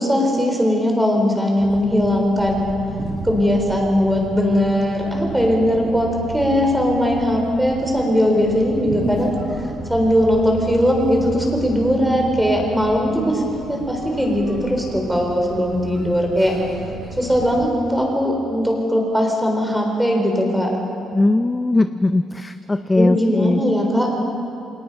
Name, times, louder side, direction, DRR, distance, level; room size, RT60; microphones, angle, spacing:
voice 1, 0.0-2.7 3.2-9.3 9.9-13.4 13.7-16.5 17.2-20.7 23.0-24.1, equal, 5° right, 0 dB, 3.7 m, -19 dB
sound 1, 1.6-17.7, right 4 dB, 45° right, 7.2 m, -34 dB
voice 2, 21.1-23.6, left 2 dB, 15° left, 10 dB, 0.4 m, -19 dB
27.0 x 18.0 x 5.4 m, 2.6 s
cardioid pair, 150°, 0 cm